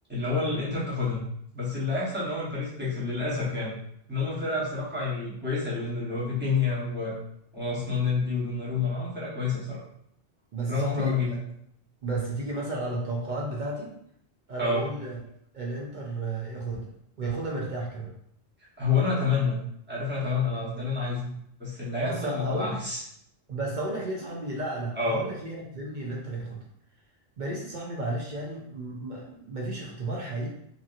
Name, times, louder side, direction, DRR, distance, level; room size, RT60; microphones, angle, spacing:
voice 1, 0.1-1.2 1.5-3.7 4.1-7.1 7.5-9.8 10.7-11.3 14.6-14.8 18.8-19.6 19.9-21.3 21.6-23.0 25.0-25.2, left 4 dB, 10° right, -8 dB, 0.9 m, -28 dB
voice 2, 10.5-11.4 12.0-13.9 14.5-15.2 15.5-16.9 17.2-18.1 22.0-22.7 23.5-26.6 27.4-30.5, right 2 dB, 55° right, -3 dB, 0.6 m, -33 dB
2.7 x 2.7 x 2.4 m, 0.72 s
omnidirectional pair, 1.2 m